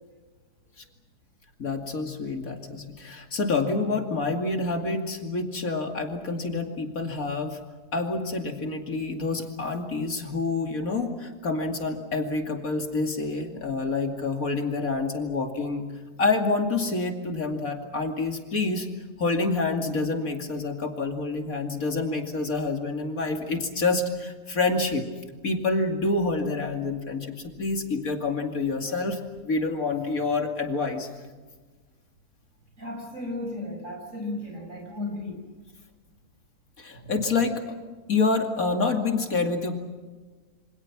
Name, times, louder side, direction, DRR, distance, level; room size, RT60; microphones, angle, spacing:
voice 1, 1.6-7.6 7.9-15.9 16.2-18.9 19.2-25.1 25.4-31.1 36.8-37.6 38.1-39.8, left 3 dB, 65° left, 3 dB, 2.9 m, -27 dB
voice 2, 32.8-35.4, left 2 dB, 55° right, 2 dB, 6.2 m, -34 dB
27.5 x 26.0 x 6.0 m, 1.3 s
omnidirectional pair, 1.6 m